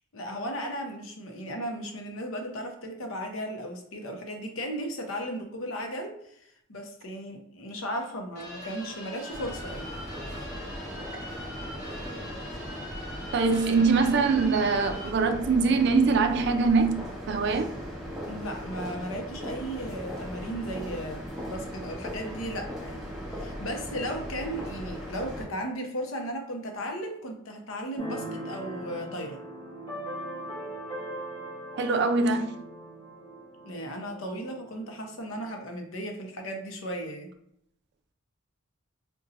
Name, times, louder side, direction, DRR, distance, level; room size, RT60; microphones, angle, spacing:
voice 1, 0.1-9.9 18.3-29.4 33.6-37.3, equal, 75° left, 4 dB, 0.6 m, -36 dB
sound 1, 8.3-15.1, left 1 dB, 45° left, 1.1 m, -42 dB
sound 2, 9.3-25.5, equal, ahead, 0.8 m, -38 dB
voice 2, 13.3-17.7 31.7-32.6, right 4 dB, 55° right, 6 dB, 0.3 m, -23 dB
Keyboard (musical), 28.0-35.5, right 1 dB, 25° left, 1.0 m, -40 dB
2.6 x 2.2 x 3.8 m, 0.73 s
head